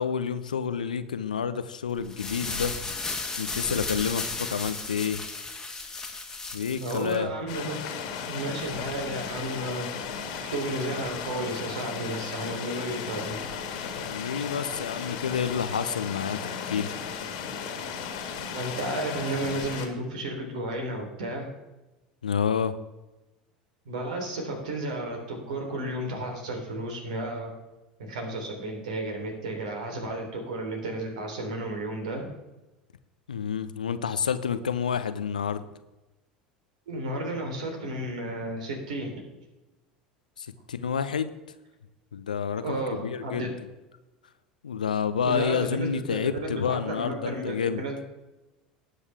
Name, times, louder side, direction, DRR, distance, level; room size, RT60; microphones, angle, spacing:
voice 1, 0.0-2.7 3.4-5.2 6.5-7.3 14.0-16.9 22.2-22.8 33.3-35.6 40.4-41.3 42.1-43.5 44.6-47.8, left 7 dB, 75° left, 13 dB, 0.7 m, -29 dB
sound 1, 2.0-7.2, left 3 dB, 10° left, 1.8 m, -34 dB
voice 2, 6.8-7.8 8.3-13.4 18.5-21.5 23.8-27.6 28.0-32.3 36.9-39.2 42.6-43.5 45.2-48.0, right 1 dB, 65° right, 3 dB, 3.3 m, -33 dB
sound 2, 7.5-19.9, left 6 dB, 55° left, 2.0 m, -35 dB
19.0 x 8.2 x 3.5 m, 1.0 s
figure-of-eight pair, 75°, 4 cm